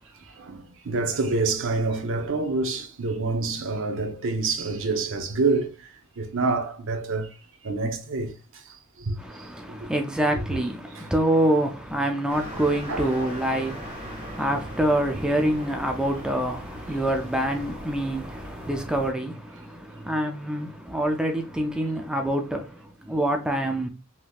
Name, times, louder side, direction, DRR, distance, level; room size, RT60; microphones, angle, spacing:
voice 1, 0.4-5.9 6.2-7.3 7.6-9.2 10.3-10.4 10.9-11.0 12.9-13.3, right 3 dB, 60° right, 0.6 m, -27 dB
voice 2, 9.2-23.9, right 1 dB, 5° right, 0.3 m, -26 dB
sound 1, 12.3-19.1, equal, 30° right, 1.9 m, -40 dB
3.4 x 2.8 x 2.2 m
head